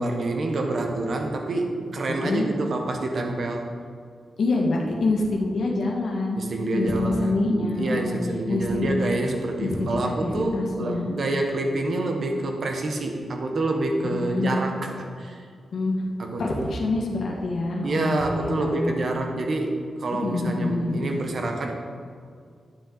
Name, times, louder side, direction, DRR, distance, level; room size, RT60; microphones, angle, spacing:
voice 1, 0.0-3.7 6.3-7.5 7.8-15.4 16.2-16.7 17.8-21.7, right 2 dB, 45° right, 3 dB, 1.0 m, -27 dB
voice 2, 2.1-2.5 4.4-6.4 6.7-8.2 8.5-9.0 9.6-11.1 14.0-14.6 15.7-16.0 16.4-18.9 20.1-21.0, left 2 dB, 55° left, -2 dB, 1.8 m, -26 dB
11.5 x 7.1 x 4.0 m, 2.2 s
wide cardioid pair, 180°, 0 cm